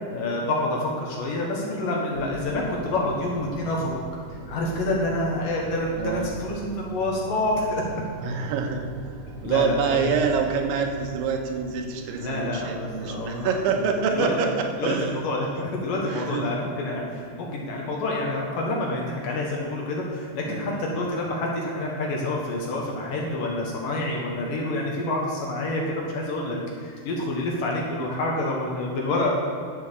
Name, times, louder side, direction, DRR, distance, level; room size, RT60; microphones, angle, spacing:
voice 1, 0.1-4.0 4.5-7.8 9.4-10.2 12.2-13.5 14.2-14.3 14.8-29.3, left 2 dB, 60° left, -2 dB, 2.6 m, -28 dB
sound 1, 2.1-20.5, right 4 dB, 70° right, 4.0 m, -43 dB
voice 2, 5.9-6.4 8.2-8.9 9.4-15.2 16.1-16.5 20.5-20.9, right 5 dB, 90° right, 3 dB, 3.5 m, -26 dB
11.5 x 7.0 x 7.0 m, 2.5 s
omnidirectional pair, 5.2 m